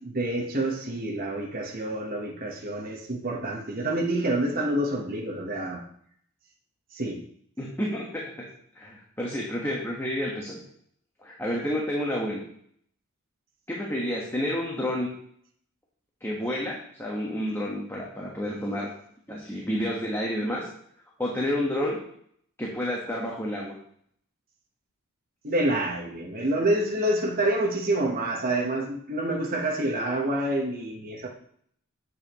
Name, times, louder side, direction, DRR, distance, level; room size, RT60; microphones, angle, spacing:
voice 1, 0.0-5.9 6.9-7.2 25.4-31.3, right 1 dB, 45° right, 0 dB, 1.3 m, -27 dB
voice 2, 7.6-8.2 8.7-10.6 11.2-12.4 13.7-15.1 16.2-18.9 19.3-20.7 21.2-22.0 22.6-23.7, left 1 dB, 10° left, -3 dB, 1.4 m, -30 dB
9.7 x 7.9 x 3.1 m, 0.64 s
head